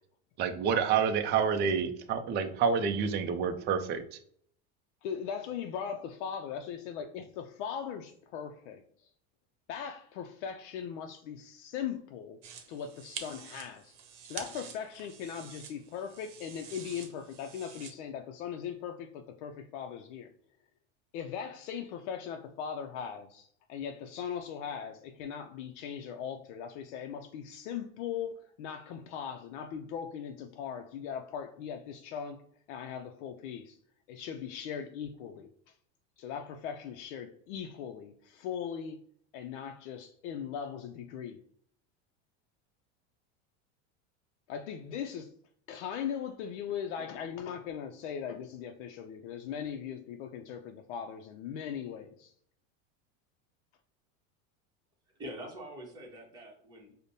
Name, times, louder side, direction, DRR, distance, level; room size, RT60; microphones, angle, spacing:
voice 1, 0.4-4.2, right 6 dB, 30° right, 0.4 m, -28 dB
voice 2, 5.0-9.1 9.7-12.4 12.7-14.0 14.2-20.3 21.1-33.8 34.1-35.8 36.2-39.0 39.3-41.4 44.5-45.3 45.7-52.3, left 8 dB, 75° left, 0.5 m, -39 dB
sound 1, 12.4-17.9, right 8 dB, 60° right, 0.8 m, -47 dB
voice 3, 55.1-56.9, equal, 10° right, 0.9 m, -44 dB
5.0 x 2.1 x 2.7 m
supercardioid pair, 130°, 35 cm